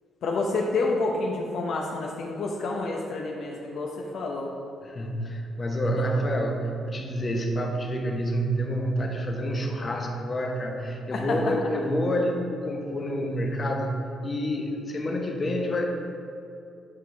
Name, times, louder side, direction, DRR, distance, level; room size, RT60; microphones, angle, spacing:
voice 1, 0.2-4.5 5.8-6.1 11.1-11.5, left 3 dB, 65° left, -1 dB, 0.7 m, -29 dB
voice 2, 4.8-15.8, equal, 35° left, 1 dB, 1.0 m, -28 dB
8.4 x 5.0 x 3.4 m, 2.5 s
cardioid pair, 90°, 0 cm